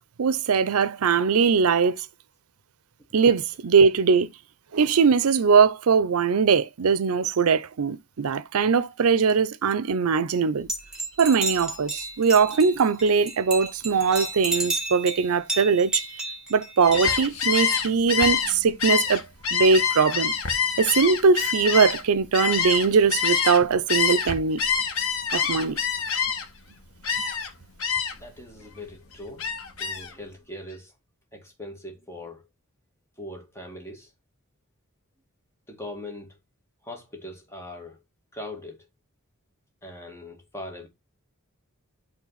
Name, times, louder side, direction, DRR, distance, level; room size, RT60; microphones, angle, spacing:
voice 1, 0.2-2.0 3.1-4.3 4.7-10.7 11.2-16.2 16.5-19.2 19.5-20.3 20.8-24.6 25.3-25.8, right 5 dB, 80° right, 0.5 m, -21 dB
sound 1, 10.7-17.1, right 2 dB, 5° right, 2.1 m, -32 dB
Gull seagull, 16.8-23.6 23.9-26.6 27.0-27.5 27.8-28.3 28.7-30.1, left 6 dB, 75° left, 1.4 m, -26 dB
voice 2, 28.1-29.5 29.8-30.9 31.3-32.4 33.2-34.1 35.7-36.3 36.9-38.0 38.3-38.8 39.8-40.9, left 1 dB, 10° left, 2.0 m, -40 dB
8.8 x 3.8 x 4.0 m
head